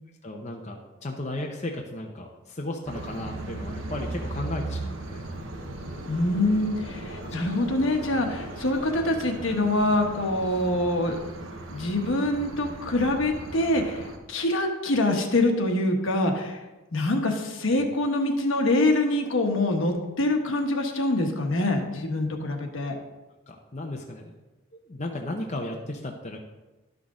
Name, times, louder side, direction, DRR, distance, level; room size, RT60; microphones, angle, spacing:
voice 1, 0.2-5.2 7.2-7.4 17.0-17.1 17.7-17.9 23.5-24.4 24.9-26.4, left 1 dB, 30° left, 1 dB, 0.7 m, -35 dB
sound 1, 2.9-14.2, right 2 dB, 70° right, 1.1 m, -37 dB
voice 2, 6.1-16.6 16.9-22.9, left 1 dB, 65° left, 3 dB, 1.2 m, -25 dB
11.5 x 6.1 x 3.7 m, 1.1 s
head